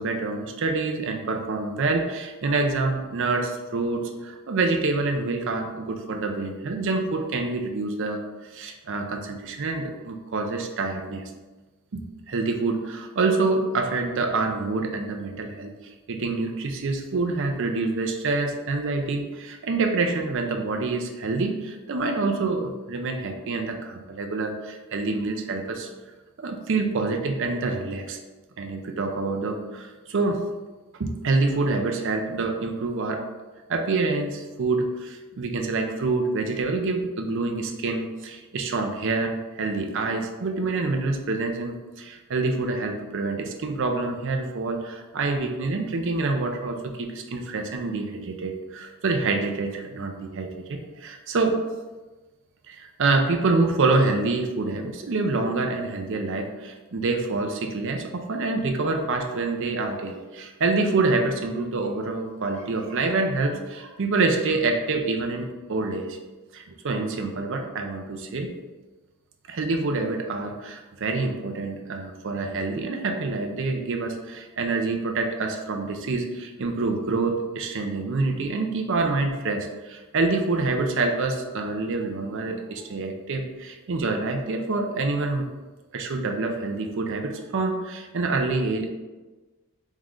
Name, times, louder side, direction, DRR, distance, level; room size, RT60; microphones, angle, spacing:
voice 1, 0.0-8.2 8.5-11.3 11.9-12.0 12.3-25.9 26.4-28.2 28.6-30.4 31.0-33.3 33.7-51.6 52.7-66.2 66.5-68.5 69.5-85.5 85.9-88.9, right 3 dB, 55° right, 4 dB, 0.5 m, -26 dB
3.7 x 3.1 x 3.7 m, 1.2 s
head